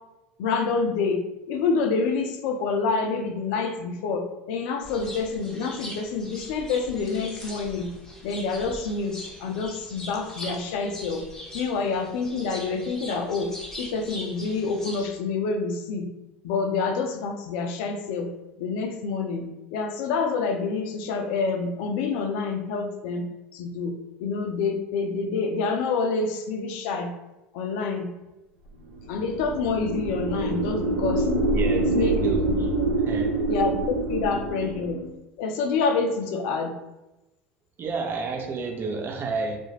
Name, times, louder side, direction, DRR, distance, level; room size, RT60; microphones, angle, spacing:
voice 1, 0.4-1.2 1.5-7.9 8.2-11.2 11.5-16.1 16.4-18.3 18.6-23.3 23.5-23.9 24.2-27.1 27.5-28.1 29.1-31.3 31.7-32.2 32.4-32.9 33.5-35.0 35.4-36.7, left 4 dB, 75° left, 5 dB, 0.4 m, -27 dB
sound 1, 4.8-15.0, left 1 dB, 10° left, 0.7 m, -41 dB
sound 2, 28.9-35.1, right 2 dB, 90° right, 0.6 m, -26 dB
voice 2, 31.5-32.7 33.0-33.3 37.8-39.6, right 4 dB, 40° right, 2 dB, 0.5 m, -30 dB
2.4 x 2.0 x 3.1 m, 0.99 s
hypercardioid pair, 80°, 6 cm